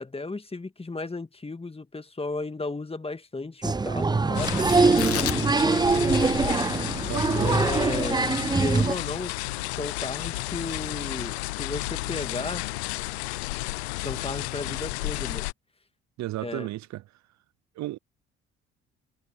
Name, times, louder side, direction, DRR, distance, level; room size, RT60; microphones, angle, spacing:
voice 1, 0.0-6.7 7.4-9.3 9.7-12.6 14.0-15.5 16.4-16.7, left 3 dB, 20° left, 1.9 m, -35 dB
Applause, 3.6-8.9, right 4 dB, 15° right, 0.5 m, -23 dB
sound 1, 4.3-15.5, left 20 dB, 85° left, 0.7 m, -32 dB
Tearing, 4.8-11.5, left 9 dB, 45° left, 1.7 m, -38 dB
voice 2, 7.0-7.5 16.2-17.0 17.8-18.0, right 16 dB, 60° right, 0.8 m, -33 dB
hypercardioid pair, 50°, 32 cm